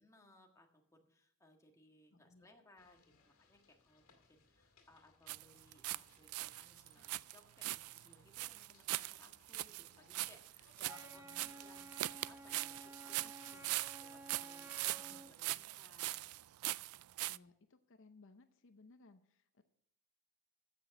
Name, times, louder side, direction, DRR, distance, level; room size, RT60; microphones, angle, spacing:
voice 1, 0.0-3.0 3.2-16.5 16.8-16.9, left 2 dB, 15° left, 2 dB, 1.6 m, -65 dB
voice 2, 2.1-2.5 3.1-3.2 10.0-10.3 10.9-11.5 13.2-13.8 15.1-15.6 17.3-19.6, left 3 dB, 60° left, 9 dB, 0.7 m, -64 dB
sound 1, 2.8-13.0, left 4 dB, 80° left, 2.2 m, -71 dB
sound 2, 5.3-6.0 6.3-17.4, right 17 dB, 90° right, 0.3 m, -41 dB
Wind instrument woodwind instrument, 10.8-15.4, right 1 dB, 10° right, 0.9 m, -54 dB
15.0 x 6.1 x 5.8 m, 0.76 s
head